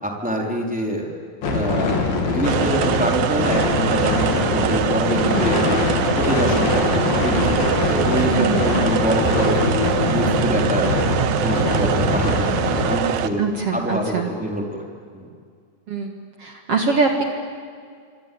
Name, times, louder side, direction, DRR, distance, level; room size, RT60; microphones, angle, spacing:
voice 1, 0.0-1.1 1.5-2.0 2.3-5.8 6.2-9.6 10.1-10.9 11.4-12.5 12.8-13.4 13.7-14.6 15.1-15.3, equal, ahead, -1 dB, 3.6 m, -25 dB
sound 1, 1.4-13.0, left 3 dB, 80° left, 5.1 m, -22 dB
sound 2, 2.4-13.3, right 10 dB, 70° right, 2.2 m, -24 dB
voice 2, 8.3-8.8 13.4-14.3 15.9-16.1 16.4-17.2, right 4 dB, 50° right, 3 dB, 2.3 m, -23 dB
sound 3, 9.2-12.7, equal, 20° right, 6.7 m, -27 dB
26.5 x 25.5 x 8.6 m, 2.1 s
omnidirectional pair, 4.1 m